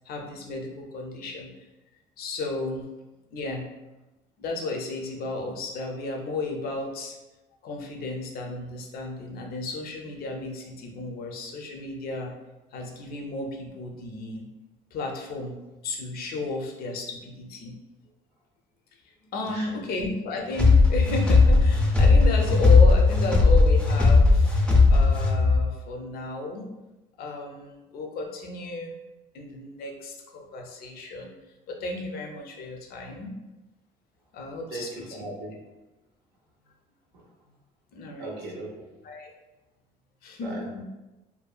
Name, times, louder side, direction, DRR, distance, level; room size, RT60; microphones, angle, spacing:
voice 1, 0.1-1.5 2.2-2.9 3.3-3.7 4.4-7.2 7.6-12.3 12.7-14.5 14.9-15.6 15.8-17.8 19.2-24.6 24.9-26.7 27.2-29.0 29.3-31.3 31.7-33.4 34.3-34.9 37.9-38.3 39.0-39.3 40.2-40.8, left 2 dB, 65° left, 2 dB, 0.5 m, -33 dB
sound 1, 20.5-25.6, left 3 dB, 5° left, 0.4 m, -17 dB
voice 2, 34.7-35.6 37.1-37.3 38.2-38.9 40.4-40.6, right 2 dB, 85° right, -1 dB, 0.5 m, -38 dB
2.7 x 2.1 x 2.3 m, 1.0 s
cardioid pair, 110°, 17 cm